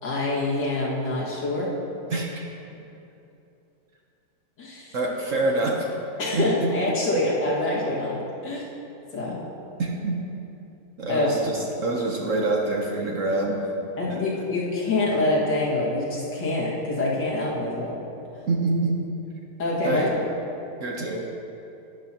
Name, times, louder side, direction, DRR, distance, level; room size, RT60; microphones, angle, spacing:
voice 1, 0.0-1.7 4.6-5.0 6.2-8.7 9.1-9.4 11.1-11.3 14.0-18.0 19.6-20.1, left 2 dB, 80° left, -6 dB, 2.5 m, -25 dB
voice 2, 2.1-2.5 4.9-5.9 6.3-6.7 9.8-10.2 11.0-13.6 14.1-14.4 18.5-19.0 19.8-20.1 20.8-21.2, right 2 dB, 55° right, 0 dB, 1.0 m, -26 dB
11.0 x 9.6 x 2.8 m, 2.8 s
omnidirectional pair, 1.9 m